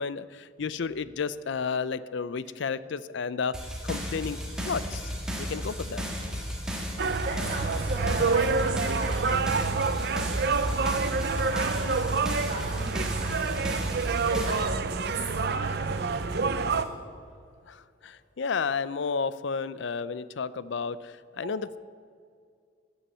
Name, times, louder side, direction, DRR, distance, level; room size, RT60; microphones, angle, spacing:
voice 1, 0.0-5.1 5.4-6.0 17.7-21.8, left 5 dB, 60° left, 16 dB, 0.5 m, -32 dB
sound 1, 3.5-14.7, equal, 5° right, 1.6 m, -34 dB
sound 2, 7.0-16.8, right 4 dB, 50° right, 0.6 m, -28 dB
voice 2, 7.2-16.9 21.3-21.5, right 2 dB, 35° right, -3 dB, 1.7 m, -38 dB
13.0 x 7.1 x 9.0 m, 2.2 s
head